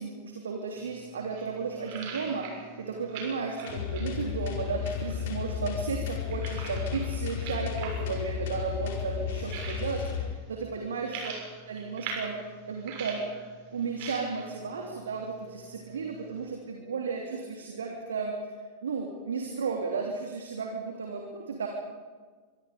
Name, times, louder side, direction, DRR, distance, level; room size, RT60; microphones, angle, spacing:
voice 1, 0.0-11.3 11.7-12.4 12.7-13.2 13.7-18.6 18.8-21.7, right 5 dB, 65° right, 1 dB, 3.0 m, -34 dB
sound 1, 0.8-16.5, right 5 dB, 45° right, 6.7 m, -45 dB
sound 2, 3.7-10.2, left 9 dB, 55° left, 4.7 m, -33 dB
25.5 x 24.0 x 5.2 m, 1.5 s
figure-of-eight pair, 90°, 0 cm